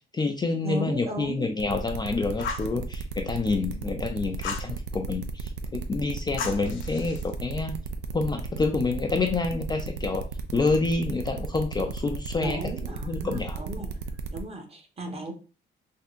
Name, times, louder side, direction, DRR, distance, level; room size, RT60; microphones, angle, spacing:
voice 1, 0.0-7.7 8.1-12.6 12.9-13.6, left 3 dB, 20° left, 3 dB, 0.3 m, -28 dB
voice 2, 0.6-1.5 12.4-13.9 14.3-15.3, right 1 dB, 30° right, 3 dB, 0.9 m, -35 dB
sound 1, 1.6-14.4, right 5 dB, 85° right, 0.5 m, -35 dB
Fire, 2.4-2.7 4.4-4.7 6.4-7.3, left 5 dB, 75° left, 0.6 m, -35 dB
3.5 x 2.7 x 2.5 m, 0.35 s
cardioid pair, 90°, 20 cm